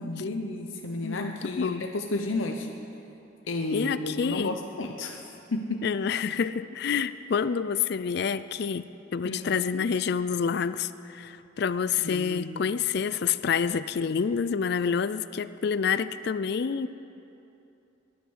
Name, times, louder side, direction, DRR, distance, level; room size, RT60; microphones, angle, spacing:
voice 1, 0.0-2.7 3.5-5.9 9.2-9.9 12.0-12.6, left 2 dB, 80° left, 3 dB, 0.9 m, -32 dB
voice 2, 1.0-1.9 3.7-4.5 5.8-8.9 9.1-16.9, left 6 dB, 55° left, 14 dB, 0.4 m, -28 dB
22.0 x 10.0 x 6.4 m, 2.8 s
head